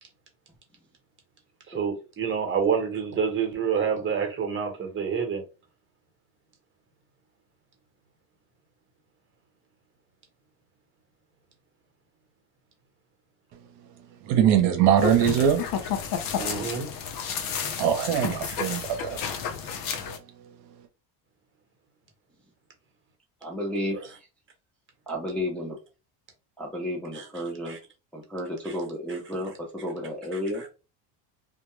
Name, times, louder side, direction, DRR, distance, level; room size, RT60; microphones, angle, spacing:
voice 1, 1.7-5.4 16.4-16.9 18.1-18.6 23.9-24.1 27.1-27.3 27.6-27.8 28.6-28.8 29.1-29.2 30.3-30.7, right 6 dB, 30° right, 0.9 m, -28 dB
voice 2, 14.2-15.6 17.7-19.4 20.1-20.2, right 9 dB, 70° right, 0.7 m, -22 dB
sound 1, 15.0-20.2, left 7 dB, 50° left, 0.6 m, -31 dB
voice 3, 23.4-24.0 25.1-25.8 26.6-27.8 28.1-29.5 29.8-30.6, left 1 dB, 5° left, 0.5 m, -32 dB
2.2 x 2.1 x 3.0 m
cardioid pair, 115°, 43 cm